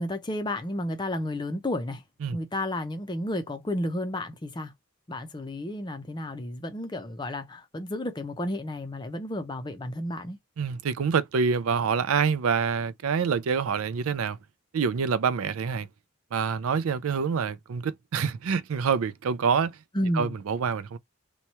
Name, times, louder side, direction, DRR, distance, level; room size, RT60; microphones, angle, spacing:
voice 1, 0.0-2.0 2.3-4.7 5.1-10.4 19.9-20.3, left 1 dB, 20° left, 0.5 m, -32 dB
voice 2, 10.6-14.4 14.7-15.9 16.3-19.7 20.1-21.0, right 6 dB, 75° right, 0.4 m, -26 dB
3.0 x 2.3 x 4.1 m
head